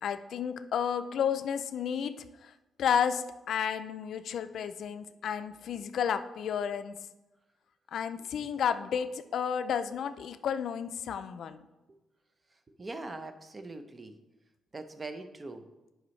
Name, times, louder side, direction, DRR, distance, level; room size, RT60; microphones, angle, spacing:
voice 1, 0.0-2.5 2.8-7.0 7.9-11.6, left 8 dB, 70° left, 11 dB, 0.4 m, -32 dB
voice 2, 12.8-14.1 14.7-15.6, right 2 dB, 25° right, 9 dB, 0.6 m, -41 dB
9.7 x 5.2 x 3.2 m, 1.0 s
cardioid pair, 120°, 0 cm